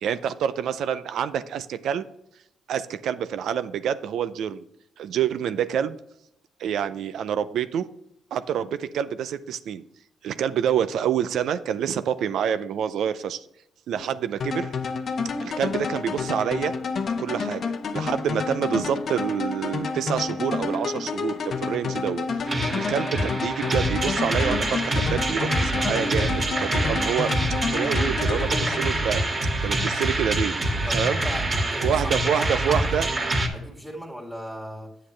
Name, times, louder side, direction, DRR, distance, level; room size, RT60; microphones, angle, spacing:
voice 1, 0.0-2.0 2.7-4.6 5.0-6.0 6.6-7.9 8.3-9.8 10.2-13.4 13.9-14.7 15.4-16.7 17.2-27.3 27.7-29.2 29.6-30.6 30.9-31.2 31.8-33.1, right 8 dB, 75° right, 12 dB, 0.4 m, -27 dB
sound 1, 14.4-29.5, left 4 dB, 50° left, 0.8 m, -29 dB
sound 2, 22.5-33.5, right 1 dB, 35° right, 1.9 m, -25 dB
voice 2, 28.1-28.4 30.9-33.2 33.5-34.9, equal, 5° right, -3 dB, 2.0 m, -38 dB
8.6 x 7.5 x 3.2 m, 0.78 s
cardioid pair, 90°, 0 cm